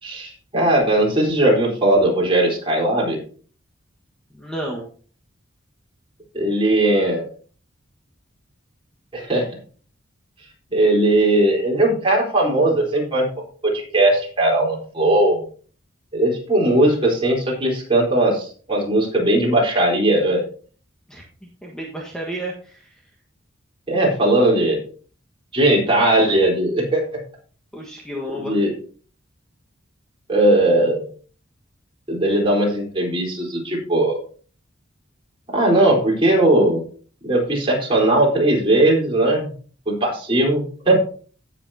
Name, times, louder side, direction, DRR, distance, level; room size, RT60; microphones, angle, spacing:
voice 1, 0.0-3.2 6.3-7.3 9.1-9.5 10.7-13.3 13.6-15.4 16.1-20.4 23.9-24.8 25.5-27.0 28.3-28.7 30.3-31.0 32.1-34.2 35.5-36.8 37.2-39.5 39.9-41.0, right 1 dB, 25° right, -2 dB, 4.0 m, -18 dB
voice 2, 4.3-4.8 21.1-21.2 21.6-23.0 27.7-28.6, equal, 5° left, -2 dB, 1.5 m, -31 dB
17.0 x 7.0 x 2.8 m, 0.42 s
head